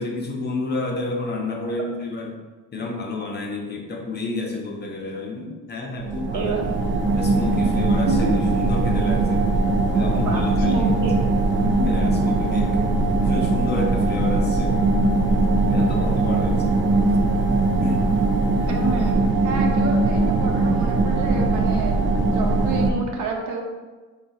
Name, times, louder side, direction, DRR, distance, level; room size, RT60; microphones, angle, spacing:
voice 1, 0.0-2.4 2.7-6.5 7.1-8.3 8.5-9.5 9.9-10.9 11.6-12.8 13.2-14.8 15.7-16.8 17.8-18.1, left 2 dB, 30° left, 1 dB, 0.7 m, -30 dB
sound 1, 6.0-22.9, right 2 dB, 35° right, 0.6 m, -20 dB
voice 2, 6.3-6.7 8.0-8.3 10.2-11.2 18.7-19.2 19.4-23.6, right 4 dB, 60° right, 1 dB, 0.9 m, -29 dB
3.7 x 2.4 x 4.1 m, 1.3 s
cardioid pair, 105°, 34 cm